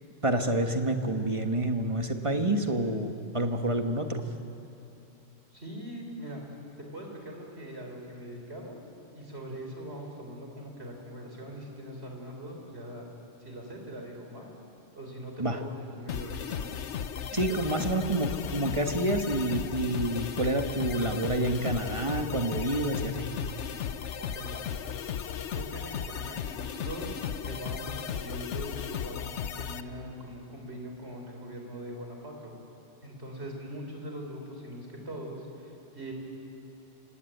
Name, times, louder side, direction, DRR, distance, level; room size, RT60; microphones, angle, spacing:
voice 1, 0.2-4.2 15.4-15.6 17.3-23.3, right 1 dB, 25° right, 5 dB, 1.4 m, -28 dB
voice 2, 5.5-6.4 6.8-8.8 9.1-13.1 13.4-14.5 15.0-16.6 17.5-17.8 24.2-24.7 25.5-27.2 27.4-32.5 33.0-36.1, equal, 55° right, 1 dB, 4.6 m, -41 dB
sound 1, 16.1-29.8, left 8 dB, 70° left, 1.1 m, -35 dB
27.0 x 17.5 x 9.3 m, 2.8 s
omnidirectional pair, 1.3 m